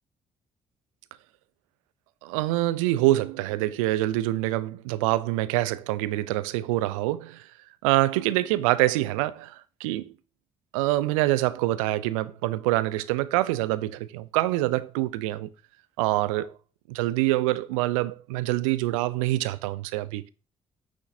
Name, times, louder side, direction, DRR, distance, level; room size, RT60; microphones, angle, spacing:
voice 1, 2.2-7.5 7.8-10.1 10.7-15.5 16.0-16.5 16.9-20.3, right 17 dB, 75° right, 0.6 m, -25 dB
9.6 x 6.4 x 2.7 m
figure-of-eight pair, 45°, 17 cm